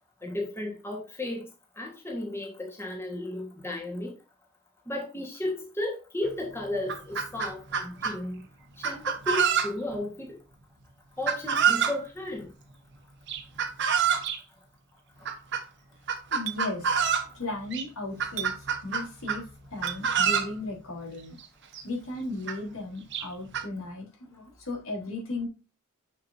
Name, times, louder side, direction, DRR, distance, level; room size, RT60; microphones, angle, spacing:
voice 1, 0.2-1.5 1.8-4.1 4.9-8.4 8.8-10.4 11.2-12.5, left 1 dB, 10° left, 1.3 m, -34 dB
Chicken rooster, 6.2-6.3 6.7-8.2 8.8-10.0 11.3-12.0 13.3-14.4 15.2-15.6 16.1-17.3 17.7-17.8 18.2-19.4 19.8-20.5 21.4-21.5 21.7-21.8 22.5-22.6 23.1-23.6, right 7 dB, 55° right, 1.0 m, -26 dB
Chink clink, 14.3-14.4 16.4-16.6 18.4-18.6 19.9-20.0, right 13 dB, 85° right, 0.9 m, -35 dB
voice 2, 16.3-17.0 17.3-21.4 21.8-25.5, left 2 dB, 75° left, 3.6 m, -36 dB
6.6 x 6.6 x 2.6 m
head